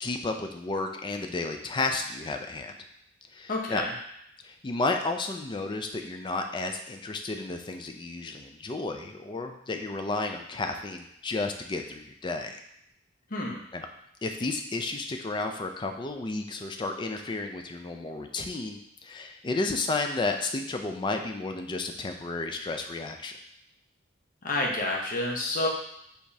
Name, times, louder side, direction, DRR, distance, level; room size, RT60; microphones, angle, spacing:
voice 1, 0.0-2.8 3.3-3.8 4.4-12.6 13.7-13.9 14.2-23.3, left 3 dB, 25° left, 5 dB, 0.4 m, -32 dB
voice 2, 3.5-3.9 13.3-13.6 24.4-25.7, left 2 dB, 45° left, -1 dB, 0.8 m, -29 dB
4.9 x 3.4 x 2.7 m, 0.75 s
head